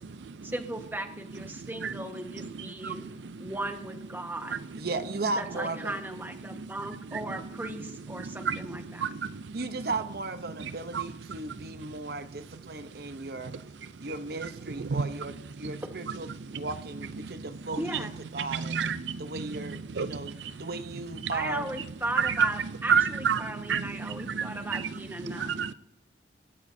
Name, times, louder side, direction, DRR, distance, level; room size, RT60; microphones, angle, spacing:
voice 1, 0.4-3.1 3.4-4.6 5.4-9.1 17.8-18.1 21.3-25.6, right 1 dB, 10° right, 5 dB, 1.3 m, -37 dB
voice 2, 1.6-1.9 2.4-3.0 3.4-3.5 4.5-4.6 6.5-6.7 8.2-8.7 9.0-9.4 10.6-11.0 11.6-11.8 14.4-14.5 14.8-15.1 15.6-15.8 16.5-16.6 17.2-17.3 18.5-20.5 22.2-22.3 22.9-24.9 25.2-25.7, right 6 dB, 80° right, 13 dB, 0.5 m, -31 dB
voice 3, 4.7-6.0 9.5-13.5 14.0-17.8 18.3-18.8 19.2-20.3 20.6-21.7, right 3 dB, 55° right, 10 dB, 0.8 m, -36 dB
25.5 x 13.0 x 2.7 m, 0.80 s
head